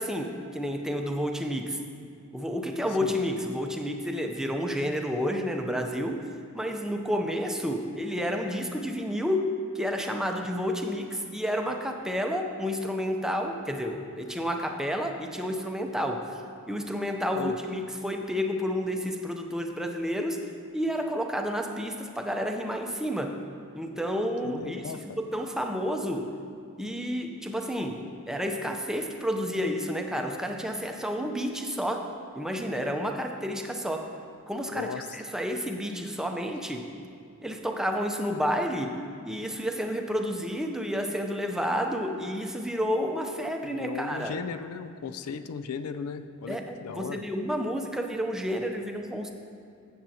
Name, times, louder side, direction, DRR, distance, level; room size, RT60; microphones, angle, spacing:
voice 1, 0.0-1.8 2.3-20.5 20.7-23.4 23.7-26.3 26.8-34.2 34.5-36.9 37.4-39.0 39.2-44.4 46.5-49.3, equal, 5° right, 3 dB, 0.5 m, -30 dB
voice 2, 24.4-25.2 34.7-35.1 43.7-47.2, left 6 dB, 90° left, 12 dB, 0.4 m, -36 dB
14.5 x 7.6 x 2.8 m, 2.4 s
head